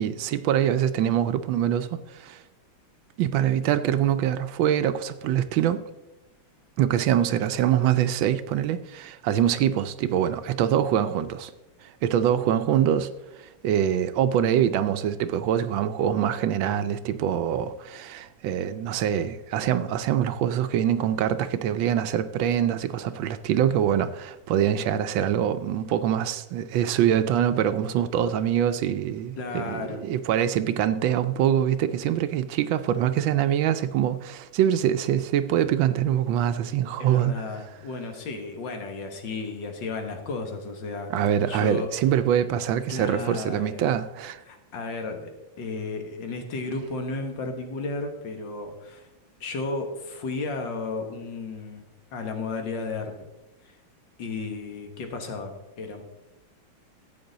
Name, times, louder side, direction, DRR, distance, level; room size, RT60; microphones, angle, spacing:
voice 1, 0.0-2.4 3.2-5.8 6.8-11.5 11.8-13.1 13.4-37.3 41.1-44.4, right 10 dB, 80° right, 1.3 m, -24 dB
voice 2, 29.4-30.0 37.0-41.9 42.9-43.8 44.5-45.3 45.6-49.1 49.4-51.8 52.1-53.1 54.2-56.0, left 3 dB, 65° left, 1.9 m, -33 dB
13.5 x 8.2 x 3.9 m
omnidirectional pair, 2.2 m